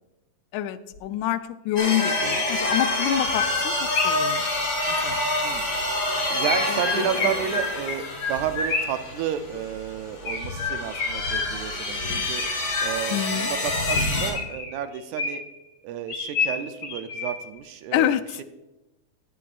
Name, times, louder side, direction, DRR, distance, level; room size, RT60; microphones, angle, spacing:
voice 1, 0.5-4.5 4.9-5.3 6.7-7.3 13.1-13.5 17.9-18.4, left 12 dB, 85° left, 12 dB, 2.0 m, -27 dB
Chirp tweet, 0.9-1.0 1.7-4.3 6.4-9.1 10.3-11.8 12.4-13.3 13.9-15.6 16.1-17.6, left 4 dB, 60° left, 3.5 m, -30 dB
sound 1, 1.8-9.7 10.2-14.3, left 2 dB, 25° left, 2.6 m, -27 dB
sound 2, 2.2-14.3, left 2 dB, 45° left, 1.4 m, -39 dB
voice 2, 6.3-12.4 12.8-15.4 15.8-18.4, right 9 dB, 80° right, 9 dB, 2.0 m, -31 dB
18.0 x 8.5 x 2.5 m, 0.98 s
omnidirectional pair, 3.5 m